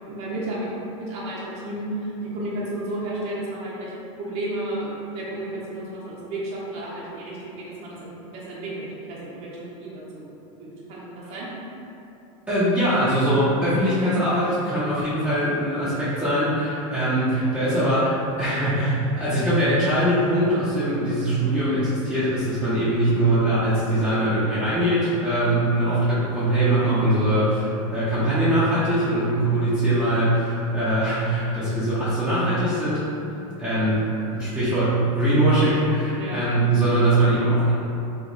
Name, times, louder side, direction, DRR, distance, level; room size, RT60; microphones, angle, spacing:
voice 1, 0.0-3.9 4.2-10.3 10.6-11.5 36.2-36.4, right 1 dB, 40° right, -6 dB, 0.9 m, -32 dB
voice 2, 12.5-33.0 33.6-37.7, right 1 dB, 10° right, -13 dB, 0.7 m, -22 dB
3.1 x 2.5 x 3.8 m, 2.9 s
supercardioid pair, 145°, 17 cm